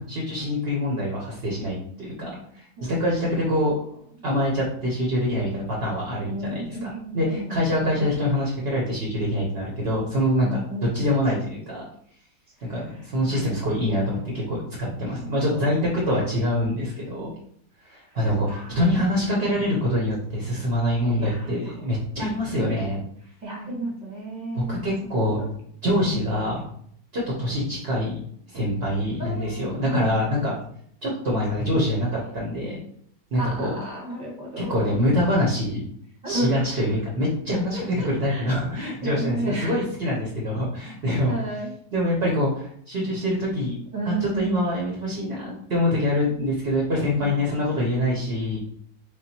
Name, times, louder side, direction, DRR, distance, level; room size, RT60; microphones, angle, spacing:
voice 1, 0.0-3.7 4.2-6.9 7.1-10.6 10.9-11.8 12.7-17.3 17.8-23.0 24.5-25.4 25.8-26.6 27.1-28.2 28.5-30.5 31.0-32.8 33.3-33.8 34.6-35.8 36.3-41.3 41.9-43.8 44.1-48.6, left 1 dB, 45° right, -3 dB, 1.0 m, -25 dB
voice 2, 2.8-3.1 6.2-8.2 10.4-11.2 12.6-14.3 15.3-15.8 18.1-18.2 18.4-19.4 19.8-20.1 21.1-21.8 22.5-22.9 23.4-24.8 25.2-25.5 26.0-26.2 29.2-30.2 31.7-31.8 33.3-34.9 36.2-37.0 37.7-38.5 38.7-39.7 41.2-41.7 43.9-44.7 47.2-47.8, right 2 dB, 5° right, -4 dB, 1.1 m, -34 dB
3.6 x 2.2 x 4.3 m, 0.64 s
omnidirectional pair, 1.8 m